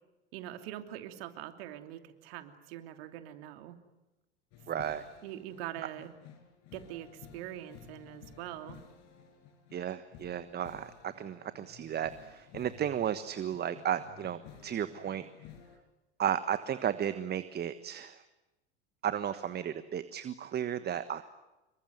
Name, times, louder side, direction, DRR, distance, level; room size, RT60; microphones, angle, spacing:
voice 1, 0.3-3.8 5.2-6.1 6.7-8.8, right 13 dB, 60° right, 8 dB, 2.9 m, -43 dB
sound 1, 4.5-15.8, left 8 dB, 50° left, 5.9 m, -54 dB
voice 2, 4.7-5.0 9.7-15.3 16.2-18.2 19.0-21.2, right 9 dB, 30° right, 12 dB, 1.4 m, -34 dB
27.0 x 23.0 x 9.4 m, 1.0 s
hypercardioid pair, 85°, 33 cm